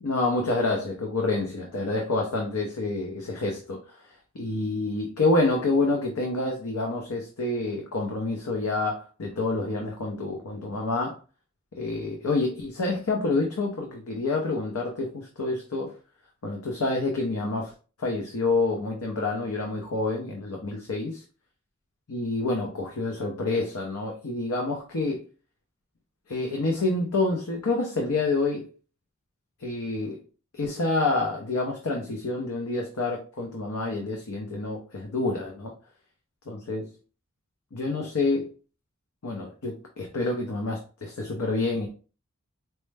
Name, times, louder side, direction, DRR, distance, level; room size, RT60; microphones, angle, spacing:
voice 1, 0.0-4.0 4.3-11.2 11.8-15.9 16.4-17.7 18.0-21.2 22.1-25.2 26.3-28.7 29.6-30.2 30.5-35.7 36.5-36.9 37.7-38.5 39.2-41.9, left 2 dB, 85° left, 1 dB, 0.7 m, -28 dB
4.5 x 2.1 x 3.3 m, 0.36 s
head